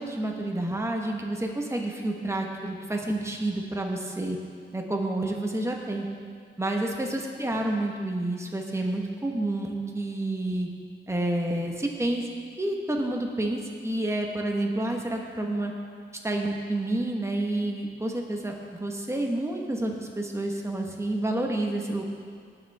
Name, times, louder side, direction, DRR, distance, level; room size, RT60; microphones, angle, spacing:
voice 1, 0.0-4.4 4.7-6.1 6.6-10.7 11.1-12.3 12.6-15.7 16.2-22.0, right 1 dB, 15° right, 1 dB, 1.4 m, -29 dB
18.5 x 7.1 x 3.6 m, 2.2 s
cardioid pair, 55°, 20 cm